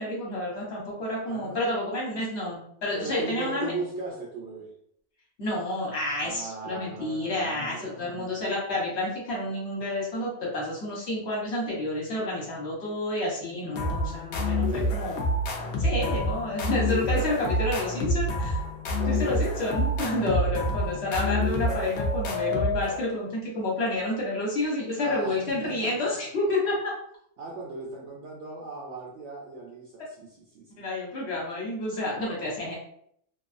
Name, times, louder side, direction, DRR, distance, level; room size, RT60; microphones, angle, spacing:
voice 1, 0.0-3.7 5.4-15.2 15.8-18.6 19.1-26.9 30.8-32.8, left 1 dB, 50° left, -4 dB, 1.1 m, -29 dB
voice 2, 1.3-1.6 2.9-4.7 6.2-8.4 14.6-15.0 19.0-19.3 20.3-20.4 25.0-26.3 27.4-30.8, right 3 dB, 70° right, -3 dB, 0.7 m, -38 dB
sound 1, 13.8-23.3, left 1 dB, 70° left, 0.7 m, -27 dB
2.6 x 2.3 x 2.5 m, 0.68 s
omnidirectional pair, 1.6 m